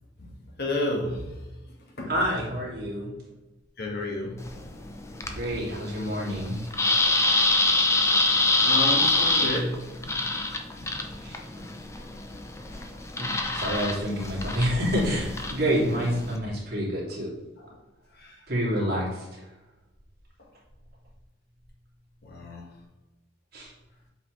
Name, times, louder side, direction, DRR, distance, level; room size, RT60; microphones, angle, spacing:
voice 1, 0.6-1.4 2.0-2.2 3.8-4.5 5.2-5.3 8.6-10.2 10.8-11.0 12.7-12.8 15.8-16.1 17.6-17.8 18.1-18.4 20.4-20.5 22.2-22.7, left 1 dB, 55° left, 0 dB, 1.5 m, -32 dB
voice 2, 2.1-3.1 5.3-6.6 11.2-11.6 13.2-17.3 18.5-19.5 23.5-23.7, equal, 55° right, -4 dB, 2.5 m, -28 dB
sound 1, 4.4-16.4, left 2 dB, 15° left, 0.6 m, -26 dB
8.1 x 5.1 x 3.2 m, 1.1 s
head